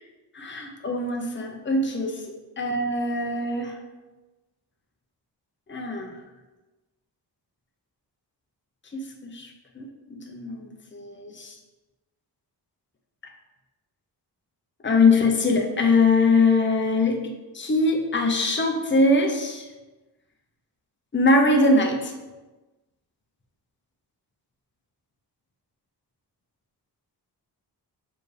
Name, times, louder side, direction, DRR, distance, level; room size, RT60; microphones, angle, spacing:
voice 1, 0.3-2.1 2.6-3.8 5.7-6.2 8.9-11.5 14.8-17.2 17.5-19.7 21.1-22.1, left 2 dB, 25° left, 2 dB, 0.8 m, -22 dB
6.1 x 4.7 x 3.3 m, 1.1 s
wide cardioid pair, 95°, 42 cm